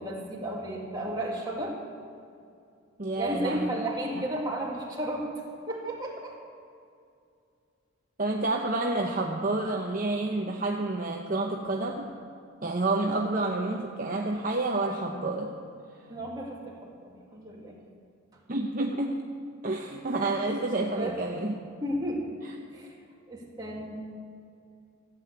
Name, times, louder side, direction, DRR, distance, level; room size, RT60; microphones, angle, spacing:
voice 1, 0.0-1.8 3.1-5.3 5.7-6.4 16.1-17.8 21.0-21.2 21.8-22.3 22.7-23.0 23.3-23.9, right 1 dB, 20° right, -3 dB, 2.2 m, -33 dB
voice 2, 3.0-3.7 4.1-4.2 8.2-12.1 12.6-15.5 18.5-19.3 19.6-21.5, right 2 dB, 40° right, 0 dB, 0.8 m, -29 dB
15.5 x 8.5 x 8.1 m, 2.4 s
head